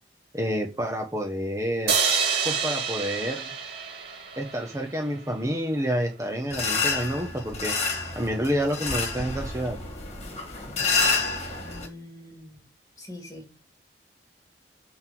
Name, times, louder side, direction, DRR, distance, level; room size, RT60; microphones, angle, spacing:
voice 1, 0.3-1.9 2.4-3.5 4.4-7.7 8.1-9.8, equal, 15° right, 0.9 m, -28 dB
sound 1, 1.9-5.2, right 6 dB, 60° right, 2.0 m, -28 dB
sound 2, 6.5-11.9, left 4 dB, 35° left, 1.7 m, -28 dB
voice 2, 11.6-12.6 13.0-13.6, left 1 dB, 20° left, 2.2 m, -43 dB
6.4 x 3.8 x 6.0 m
head